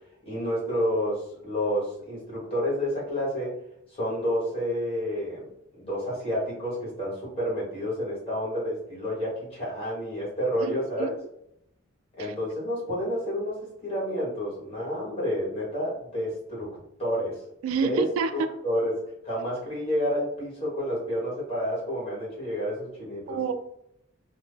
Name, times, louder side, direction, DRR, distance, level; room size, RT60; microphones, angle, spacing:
voice 1, 0.2-3.6 3.9-5.4 5.8-11.1 12.1-13.5 13.8-16.7 17.0-17.4 17.8-23.4, equal, 30° left, -5 dB, 1.4 m, -29 dB
voice 2, 10.7-11.1 12.2-12.3 17.6-18.3 23.3-23.5, right 5 dB, 90° right, 8 dB, 0.3 m, -28 dB
2.9 x 2.0 x 3.3 m, 0.76 s
head